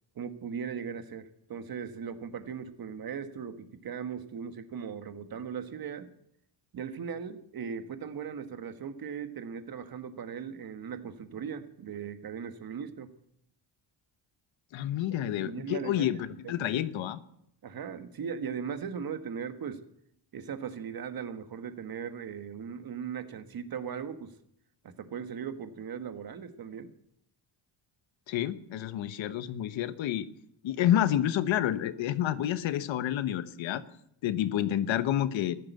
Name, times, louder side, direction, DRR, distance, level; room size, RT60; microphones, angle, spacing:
voice 1, 0.2-6.1 6.7-13.1 15.4-16.1 16.4-16.7 17.6-19.8 20.3-24.3 24.8-26.9, right 7 dB, 50° right, 9 dB, 1.6 m, -38 dB
voice 2, 14.7-17.2 28.3-30.3 30.6-33.8 34.2-35.6, left 11 dB, 85° left, 13 dB, 1.2 m, -29 dB
15.0 x 11.5 x 8.3 m, 0.73 s
cardioid pair, 115°, 45 cm